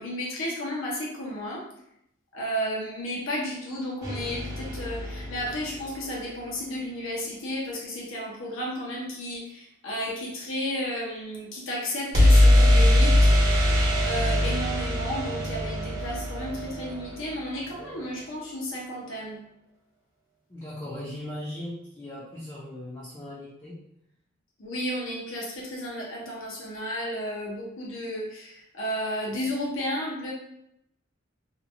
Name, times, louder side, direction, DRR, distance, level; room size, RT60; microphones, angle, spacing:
voice 1, 0.0-1.6 2.3-13.3 14.0-19.4 24.6-30.3, equal, 65° left, -3 dB, 0.7 m, -33 dB
sound 1, 4.0-6.0 12.1-17.9, left 1 dB, 50° right, 0.9 m, -22 dB
voice 2, 20.5-23.8, left 1 dB, 20° left, -9 dB, 0.5 m, -38 dB
2.8 x 2.2 x 2.6 m, 0.77 s
head